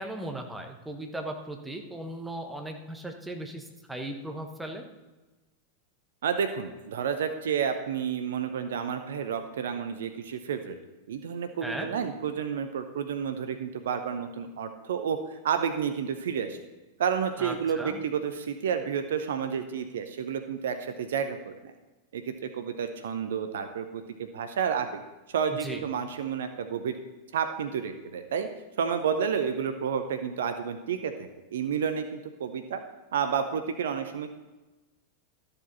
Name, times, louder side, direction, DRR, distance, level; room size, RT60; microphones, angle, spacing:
voice 1, 0.0-4.8 11.6-11.9 17.4-18.0 25.6-25.8, right 1 dB, 5° right, 3 dB, 1.3 m, -37 dB
voice 2, 6.2-10.8 11.1-16.6 17.0-21.7 22.1-25.0 25.3-27.0 27.3-28.5 28.8-32.8 33.1-34.3, right 7 dB, 60° right, 8 dB, 0.7 m, -30 dB
13.0 x 6.8 x 4.1 m, 1.1 s
figure-of-eight pair, 90°, 0 cm